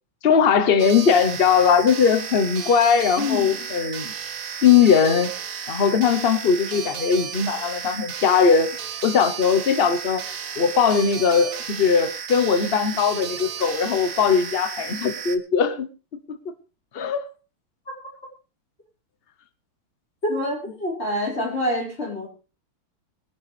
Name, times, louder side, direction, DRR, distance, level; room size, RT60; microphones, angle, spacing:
voice 1, 0.2-4.1 4.6-5.3 5.7-8.7 9.0-15.9 16.3-16.4 16.9-17.2, left 6 dB, 75° left, 11 dB, 0.5 m, -19 dB
sound 1, 0.8-15.4, right 7 dB, 55° right, 1.0 m, -33 dB
voice 2, 3.2-3.5 20.2-22.3, left 1 dB, 25° left, -2 dB, 5.0 m, -26 dB
21.0 x 10.5 x 3.3 m, 0.32 s
omnidirectional pair, 2.4 m